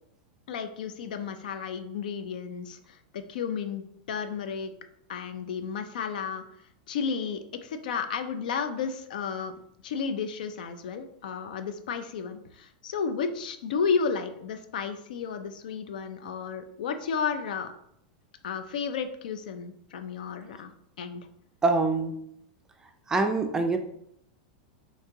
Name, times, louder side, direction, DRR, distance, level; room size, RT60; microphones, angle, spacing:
voice 1, 0.5-3.8 4.1-4.7 5.1-6.4 6.9-9.5 9.8-17.7 18.4-20.7 21.0-21.3, left 6 dB, 80° left, 9 dB, 0.4 m, -32 dB
voice 2, 21.6-22.2 23.1-23.8, right 3 dB, 15° right, 5 dB, 0.4 m, -24 dB
2.9 x 2.8 x 3.4 m, 0.73 s
supercardioid pair, 140°, 4 cm